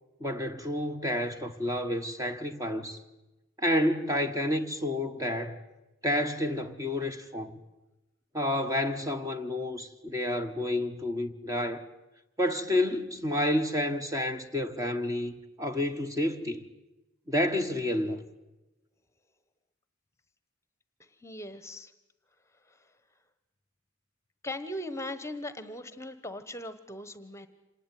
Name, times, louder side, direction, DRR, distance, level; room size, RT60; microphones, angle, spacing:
voice 1, 0.2-3.0 3.6-5.6 6.0-7.6 8.3-11.9 12.4-16.6 17.3-18.2, left 1 dB, 15° right, 1.1 m, -30 dB
voice 2, 21.0-21.9 22.7-22.8 24.4-27.5, left 1 dB, 15° left, 1.2 m, -39 dB
26.5 x 19.0 x 9.2 m
head